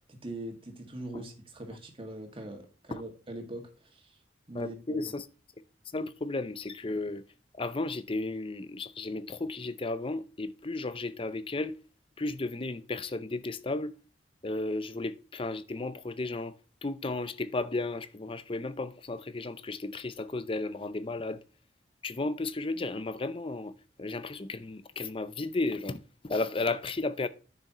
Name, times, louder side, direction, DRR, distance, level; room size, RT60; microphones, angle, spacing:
voice 1, 0.0-4.2 4.5-5.1, right 1 dB, 30° right, 2.0 m, -42 dB
voice 2, 4.5-5.2 5.9-7.2 7.5-11.8 12.2-13.9 14.4-16.5 16.8-21.4 22.0-23.7 24.0-27.3, left 2 dB, 30° left, 0.6 m, -34 dB
9.8 x 6.6 x 3.0 m
head